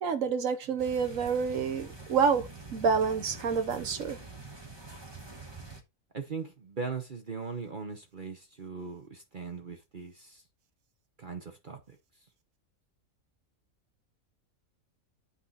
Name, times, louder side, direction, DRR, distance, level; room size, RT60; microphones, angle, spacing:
voice 1, 0.0-4.2, right 6 dB, 70° right, 1.3 m, -28 dB
sound 1, 0.8-5.8, right 3 dB, 20° right, 1.4 m, -46 dB
voice 2, 6.1-10.4 11.2-11.8, right 4 dB, 40° right, 1.0 m, -39 dB
8.4 x 4.6 x 4.1 m
omnidirectional pair, 1.5 m